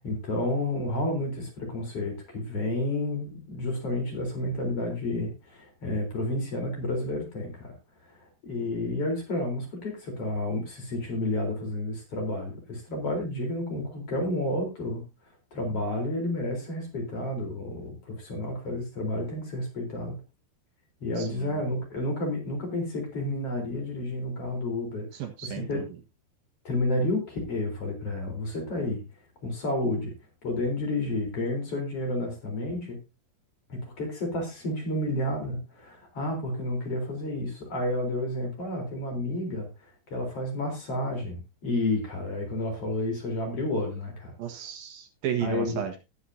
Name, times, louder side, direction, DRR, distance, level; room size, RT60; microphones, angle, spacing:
voice 1, 0.0-7.7 8.1-8.2 8.4-15.0 15.5-20.2 21.0-25.8 26.6-29.0 29.4-30.1 30.4-33.0 33.7-39.7 40.1-44.4 45.4-45.8, left 1 dB, 40° left, 2 dB, 4.8 m, -30 dB
voice 2, 21.2-21.6 25.1-25.9 44.4-46.0, right 10 dB, 70° right, 5 dB, 3.1 m, -34 dB
19.5 x 7.6 x 2.8 m, 0.25 s
omnidirectional pair, 4.4 m